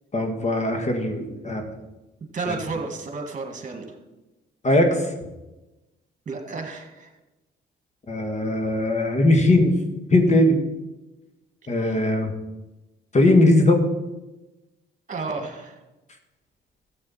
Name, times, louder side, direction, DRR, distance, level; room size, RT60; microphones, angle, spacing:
voice 1, 0.1-1.6 2.5-2.6 4.6-5.1 8.1-9.8 10.1-10.6 11.7-12.3 13.1-13.8, left 1 dB, 35° left, 4 dB, 1.8 m, -19 dB
voice 2, 2.2-4.0 6.3-7.1 11.8-12.0 15.1-15.8, right 4 dB, 40° right, 4 dB, 2.0 m, -32 dB
13.5 x 7.9 x 4.3 m, 1.1 s
cardioid pair, 90°, 20 cm